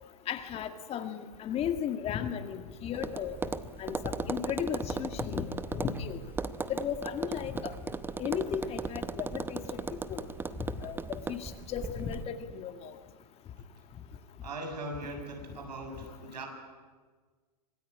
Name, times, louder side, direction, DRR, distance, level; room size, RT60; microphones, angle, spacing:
voice 1, 0.3-3.4 3.8-6.2 6.7-7.7 8.2-10.3 10.8-12.9, left 8 dB, 30° left, 7 dB, 2.1 m, -35 dB
Tap, 2.9-12.2, right 4 dB, 10° right, 0.9 m, -37 dB
voice 2, 14.4-16.5, right 2 dB, 85° right, 4 dB, 7.4 m, -40 dB
25.5 x 19.5 x 9.7 m, 1.5 s
hypercardioid pair, 125°, 21 cm